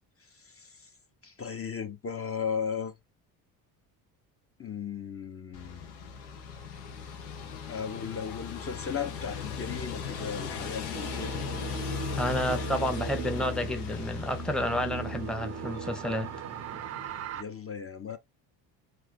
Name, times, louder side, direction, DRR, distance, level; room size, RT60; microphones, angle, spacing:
voice 1, 0.4-0.9 1.2-2.9 4.6-6.2 7.7-11.6 17.3-18.2, left 7 dB, 30° left, 1.0 m, -36 dB
sound 1, 5.5-17.3, left 6 dB, 85° left, 1.3 m, -38 dB
sound 2, 10.9-17.4, right 10 dB, 35° right, 0.4 m, -39 dB
voice 2, 12.2-16.3, equal, ahead, 0.9 m, -30 dB
4.7 x 2.9 x 2.9 m
hypercardioid pair, 65°, 45 cm